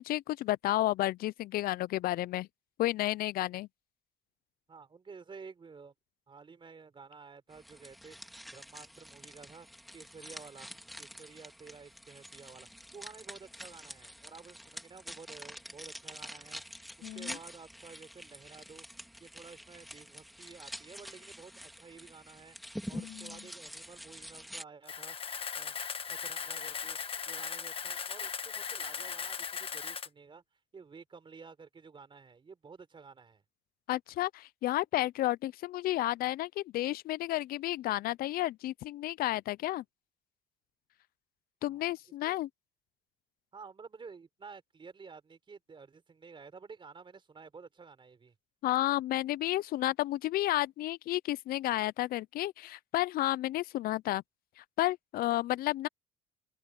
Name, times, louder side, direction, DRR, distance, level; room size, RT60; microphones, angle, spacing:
voice 1, 0.0-2.5 2.8-3.7 17.0-17.4 22.9-23.4 33.9-39.8 41.6-42.5 48.6-54.2 54.6-55.9, left 15 dB, 60° left, 0.4 m, -31 dB
voice 2, 4.7-5.9 6.3-8.2 8.5-9.7 9.9-12.7 12.9-16.6 17.0-18.8 19.2-22.6 22.9-25.2 25.6-25.8 26.1-27.0 27.3-30.4 30.7-33.4 41.6-41.9 42.2-42.4 43.5-48.3, right 5 dB, 30° right, 4.1 m, -52 dB
sound 1, 7.5-24.6, equal, ahead, 1.8 m, -47 dB
Camera, 24.9-30.1, left 6 dB, 35° left, 1.3 m, -38 dB
cardioid pair, 110°, 17 cm